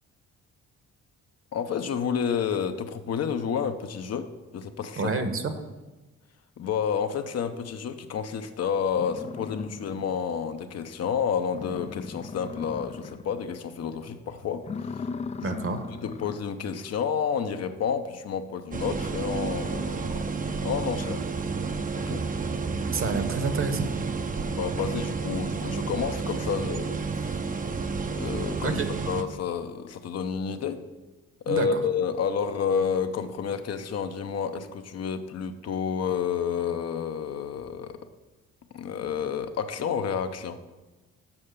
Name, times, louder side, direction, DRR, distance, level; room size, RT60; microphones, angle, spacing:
voice 1, 1.5-5.1 6.6-14.7 15.4-15.6 16.0-20.3 20.6-21.3 22.0-22.2 24.4-27.4 28.1-28.8 29.1-30.8 31.4-38.0 38.7-40.6, left 7 dB, 55° left, 8 dB, 0.8 m, -30 dB
voice 2, 5.0-5.5 15.4-15.8 22.9-23.9 28.6-28.9 31.5-31.8, right 4 dB, 45° right, 8 dB, 1.1 m, -28 dB
sound 1, 8.9-10.3 10.7-10.8 11.2-11.3 11.5-13.4 13.7-14.1 14.5-16.6, left 5 dB, 25° left, 0.3 m, -38 dB
sound 2, 18.7-29.2, right 4 dB, 25° right, 0.6 m, -30 dB
7.2 x 5.6 x 6.6 m, 1.1 s
cardioid pair, 90°, 30 cm